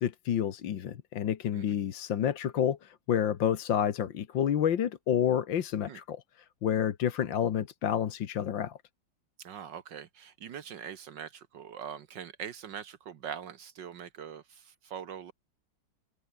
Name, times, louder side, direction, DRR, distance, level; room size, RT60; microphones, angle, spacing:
voice 1, 0.0-6.2 6.6-8.8, left 9 dB, 75° left, 2.0 m, -29 dB
voice 2, 9.4-15.3, right 8 dB, 70° right, 1.8 m, -43 dB
omnidirectional pair, 2.1 m